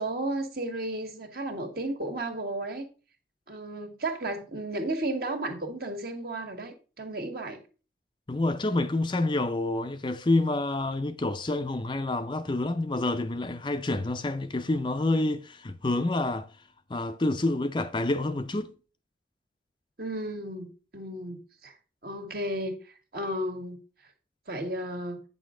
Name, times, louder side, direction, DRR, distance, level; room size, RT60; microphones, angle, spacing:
voice 1, 0.0-2.9 3.5-7.6 20.0-21.7 22.0-23.8 24.5-25.2, right 1 dB, 55° right, 1.7 m, -33 dB
voice 2, 8.3-16.5 16.9-18.7, left 2 dB, 25° left, 0.5 m, -28 dB
8.8 x 6.3 x 3.7 m
head